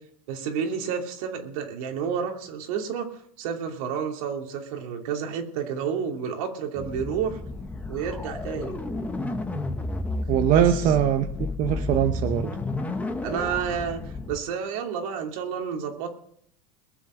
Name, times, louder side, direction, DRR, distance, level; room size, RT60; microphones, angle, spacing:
voice 1, 0.3-3.1 3.4-7.4 7.9-8.8 10.5-10.9 13.2-14.0 14.3-16.1, right 7 dB, 70° right, 3 dB, 2.9 m, -30 dB
sound 1, 6.8-14.4, left 2 dB, 10° left, 1.4 m, -31 dB
voice 2, 10.3-12.5, right 10 dB, 45° right, 7 dB, 1.0 m, -22 dB
21.5 x 7.4 x 6.4 m, 0.69 s
supercardioid pair, 120°, 19 cm